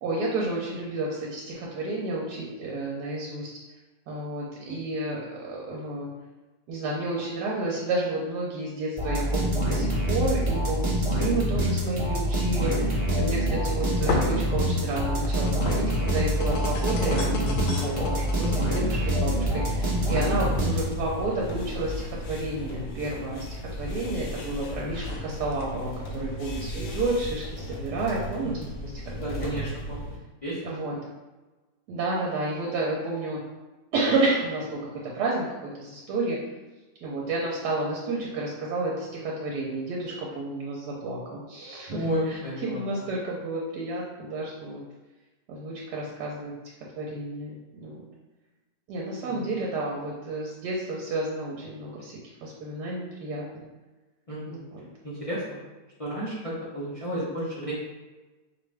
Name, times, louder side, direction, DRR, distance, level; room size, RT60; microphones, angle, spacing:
voice 1, 0.0-3.5 4.1-6.1 6.7-29.8 30.6-31.0 31.9-33.4 33.9-36.4 37.0-44.8 45.5-46.5 47.0-48.1 48.9-53.6 54.5-54.8 57.0-57.3, right 2 dB, 80° right, -3 dB, 1.2 m, -31 dB
sound 1, 9.0-21.2, equal, 25° right, 0.8 m, -26 dB
sound 2, 13.6-27.1, left 3 dB, 90° left, 1.3 m, -37 dB
voice 2, 17.8-18.2 29.2-30.1 30.4-30.7 41.9-42.8 49.3-49.5 54.3-54.6 55.0-55.6 56.0-57.7, equal, 40° left, -8 dB, 0.4 m, -32 dB
sound 3, 19.8-30.2, left 1 dB, 65° left, 1.1 m, -36 dB
4.4 x 2.5 x 3.3 m, 1.2 s
omnidirectional pair, 1.8 m